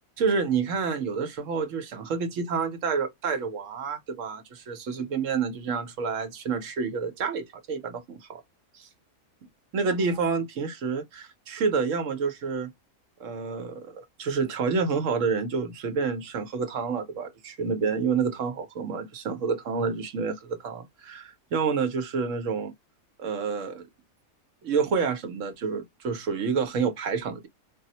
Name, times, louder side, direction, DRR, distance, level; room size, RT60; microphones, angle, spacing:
voice 1, 0.2-8.4 8.7-8.9 9.7-12.7 13.2-22.7 23.2-23.8 24.6-27.5, right 5 dB, 65° right, 1.0 m, -28 dB
3.9 x 2.0 x 2.7 m
omnidirectional pair, 1.5 m